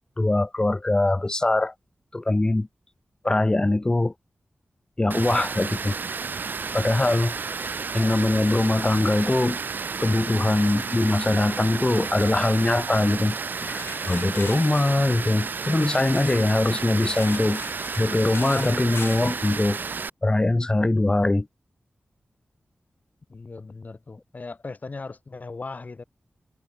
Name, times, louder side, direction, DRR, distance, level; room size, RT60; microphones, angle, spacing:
voice 1, 0.2-1.7 2.1-2.7 3.2-4.1 5.0-6.0 6.7-7.3 7.9-9.6 10.0-13.4 13.6-17.6 18.0-19.8 20.2-21.5, left 2 dB, 20° left, 0.5 m, -22 dB
Water, 5.1-20.1, right 5 dB, 55° right, 0.4 m, -32 dB
sound 1, 13.6-16.6 17.0-19.4, left 5 dB, 75° left, 1.6 m, -41 dB
voice 2, 23.3-26.0, left 3 dB, 45° left, 1.4 m, -38 dB
wide cardioid pair, 110°, 4 cm